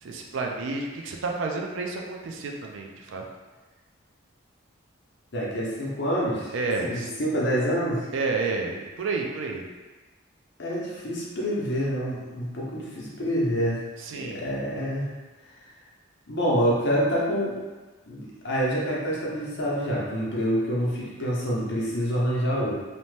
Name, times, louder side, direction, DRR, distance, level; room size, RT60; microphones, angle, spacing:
voice 1, 0.0-3.2 6.5-7.1 8.1-9.7 14.0-14.4, right 3 dB, 60° right, 1 dB, 0.3 m, -30 dB
voice 2, 5.3-6.5 6.8-8.1 10.6-13.8 14.1-15.1 16.3-17.6 18.1-22.7, equal, 55° left, -5 dB, 0.7 m, -27 dB
2.7 x 2.1 x 3.1 m, 1.2 s
head